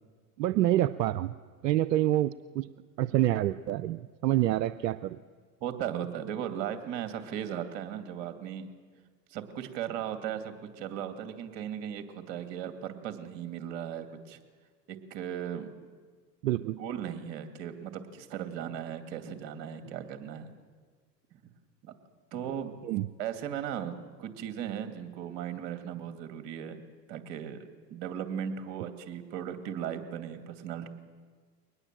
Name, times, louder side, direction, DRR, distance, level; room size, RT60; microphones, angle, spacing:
voice 1, 0.4-1.3 1.6-2.7 3.0-5.2 16.4-16.8 22.9-23.1, right 14 dB, 85° right, 14 dB, 0.7 m, -27 dB
voice 2, 5.6-8.7 9.3-14.4 14.9-15.7 16.8-20.5 21.3-21.4 21.8-22.0 22.3-22.8 23.2-26.8 27.1-27.6 27.9-30.9, right 9 dB, 60° right, 7 dB, 2.5 m, -37 dB
22.5 x 19.5 x 7.6 m, 1.5 s
hypercardioid pair, 85°, 49 cm